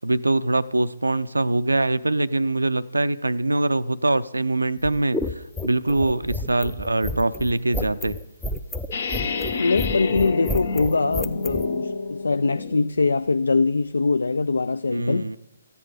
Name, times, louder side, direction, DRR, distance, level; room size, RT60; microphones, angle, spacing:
voice 1, 0.0-8.2 14.9-15.4, right 2 dB, 85° right, 13 dB, 0.4 m, -23 dB
sound 1, 4.8-11.6, left 1 dB, 5° left, 0.5 m, -30 dB
sound 2, 8.9-12.9, left 4 dB, 55° left, 0.8 m, -29 dB
voice 2, 9.6-15.3, left 3 dB, 75° left, 14 dB, 0.3 m, -22 dB
13.5 x 8.3 x 4.9 m, 1.0 s
figure-of-eight pair, 140°, 0 cm